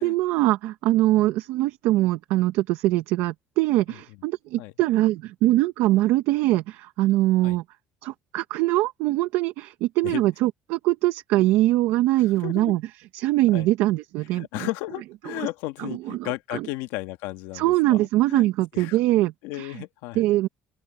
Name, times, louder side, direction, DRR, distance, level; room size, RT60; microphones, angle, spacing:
voice 1, 0.0-7.6 8.0-12.8 13.1-14.5 15.4-15.5 15.8-16.7 17.5-19.7 20.1-20.5, right 16 dB, 80° right, 1.2 m, -22 dB
voice 2, 12.2-12.7 13.5-13.7 14.3-19.0 19.4-20.2, left 19 dB, 90° left, 1.7 m, -34 dB
open air
cardioid pair, 120°, 4 cm